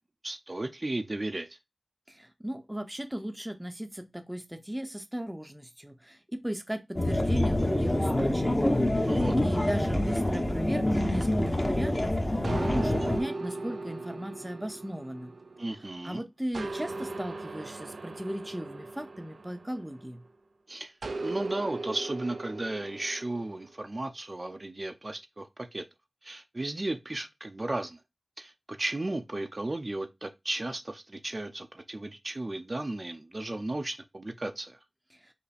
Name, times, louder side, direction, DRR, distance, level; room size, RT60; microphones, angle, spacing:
voice 1, 0.2-1.5 9.1-9.3 15.6-16.2 20.7-20.9 21.2-25.8 26.2-28.0 28.4-34.8, right 2 dB, 45° right, 0.6 m, -35 dB
voice 2, 2.1-15.3 16.0-20.2, equal, 10° right, 0.7 m, -37 dB
sound 1, 7.0-13.2, left 1 dB, 25° left, 0.9 m, -26 dB
sound 2, 12.4-16.0 16.5-20.3 21.0-23.7, right 2 dB, 90° right, 0.5 m, -38 dB
5.5 x 2.1 x 4.1 m
wide cardioid pair, 45°, 0 cm